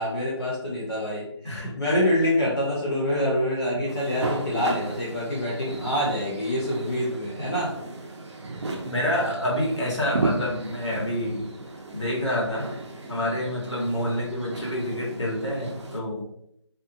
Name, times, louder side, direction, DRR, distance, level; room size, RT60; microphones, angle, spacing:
voice 1, 0.0-7.7, left 1 dB, 50° left, -6 dB, 0.7 m, -26 dB
voice 2, 1.4-1.8 3.7-3.8 7.4-7.5 8.8-11.5 11.9-12.7 13.1-16.2, left 1 dB, 70° left, -4 dB, 1.3 m, -28 dB
sound 1, 3.9-16.0, right 2 dB, 65° right, 0.5 m, -35 dB
2.6 x 2.5 x 2.5 m, 0.74 s
figure-of-eight pair, 175°, 16 cm